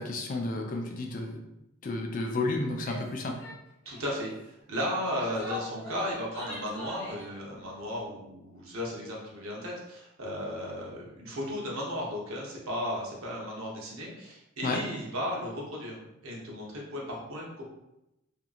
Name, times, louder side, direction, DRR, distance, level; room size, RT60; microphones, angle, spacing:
voice 1, 0.0-1.4 1.8-3.4 14.6-14.8, left 2 dB, 40° left, 2 dB, 0.3 m, -31 dB
Female speech woman speaking / Yell, 2.8-3.1 3.4-3.6 3.9-4.2 4.9-7.3, left 1 dB, 15° left, 0.8 m, -42 dB
voice 2, 3.9-17.6, equal, 75° right, -3 dB, 0.8 m, -35 dB
2.9 x 2.5 x 2.4 m, 0.89 s
head